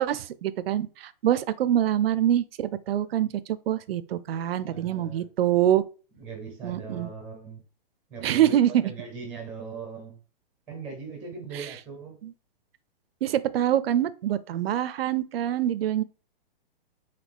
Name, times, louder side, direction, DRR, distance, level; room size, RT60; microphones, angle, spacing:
voice 1, 0.0-5.8 6.6-7.1 8.2-8.9 11.5-11.7 12.2-12.3 13.2-16.0, right 11 dB, 80° right, 0.5 m, -25 dB
voice 2, 4.7-5.3 6.2-7.6 8.1-10.2 10.7-12.2, right 4 dB, 5° right, 0.5 m, -39 dB
4.1 x 2.7 x 3.4 m
hypercardioid pair, 160°, 29 cm